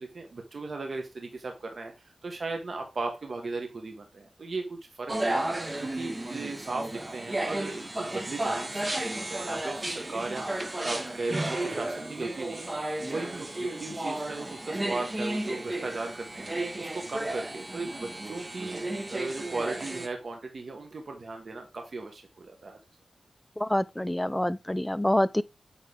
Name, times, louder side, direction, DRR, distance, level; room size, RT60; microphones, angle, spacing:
voice 1, 0.0-1.9 2.2-22.8, right 3 dB, 60° right, 1.5 m, -37 dB
sound 1, 5.1-20.1, right 1 dB, 25° right, 1.2 m, -33 dB
voice 2, 23.6-25.4, left 1 dB, 10° left, 0.4 m, -26 dB
8.4 x 4.1 x 3.6 m
wide cardioid pair, 80°, 0 cm